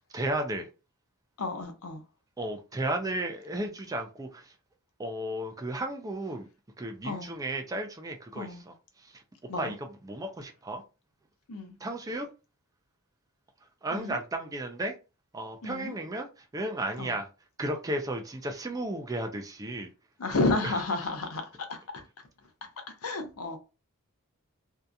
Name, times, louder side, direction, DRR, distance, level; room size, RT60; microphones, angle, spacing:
voice 1, 0.1-0.7 2.4-4.5 5.0-6.5 6.8-9.2 9.6-10.8 11.8-12.3 13.8-14.9 15.3-17.3 17.6-19.9 20.6-20.8 21.0-21.1, right 1 dB, 15° right, 0.4 m, -34 dB
voice 2, 1.4-2.0 7.0-7.3 8.4-8.6 9.5-9.7 11.5-11.7 13.9-14.2 15.6-15.9 17.0-17.1 20.2-21.4 21.7-22.0 23.0-23.6, left 2 dB, 65° left, 0.6 m, -31 dB
2.7 x 2.4 x 2.2 m
head